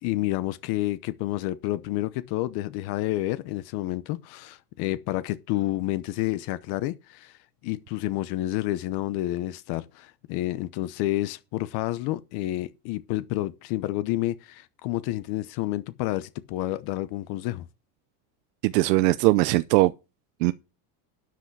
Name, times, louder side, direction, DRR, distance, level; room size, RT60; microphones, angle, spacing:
voice 1, 0.0-17.7, left 16 dB, 50° left, 0.9 m, -29 dB
voice 2, 18.6-19.9 20.4-20.5, right 20 dB, 80° right, 0.8 m, -20 dB
12.5 x 8.2 x 4.7 m
cardioid pair, 155°, 49 cm